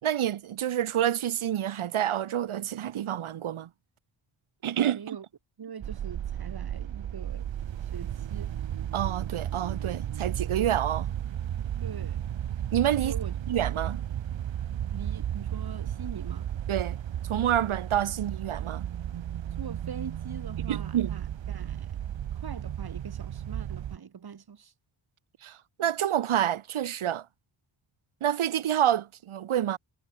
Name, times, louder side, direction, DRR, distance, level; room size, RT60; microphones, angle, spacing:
voice 1, 0.0-3.7 4.6-5.2 8.9-11.2 12.7-13.1 13.5-14.0 16.7-17.0 17.2-18.9 20.7-21.1 25.4-27.3 28.2-29.8, right 10 dB, 90° right, 2.7 m, -28 dB
voice 2, 4.9-5.2 5.6-7.5 7.9-8.6 11.8-12.2 13.0-13.3 14.9-16.5 19.6-22.0 22.3-24.7, right 7 dB, 50° right, 4.5 m, -42 dB
sound 1, 5.8-24.0, right 10 dB, 65° right, 1.6 m, -34 dB
wide cardioid pair, 145°, 48 cm